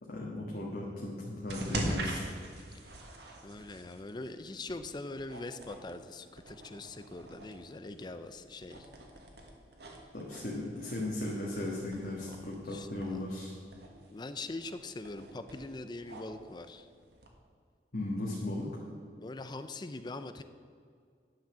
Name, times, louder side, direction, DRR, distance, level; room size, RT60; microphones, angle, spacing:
voice 1, 0.0-2.2 10.1-13.6 17.9-18.7, left 1 dB, 55° left, -4 dB, 1.5 m, -37 dB
sound 1, 1.5-17.3, right 1 dB, 70° right, 1.5 m, -43 dB
voice 2, 3.4-8.9 12.3-13.2 14.1-16.9 19.2-20.4, left 2 dB, 25° left, 10 dB, 0.4 m, -42 dB
10.0 x 6.1 x 7.1 m, 2.1 s
head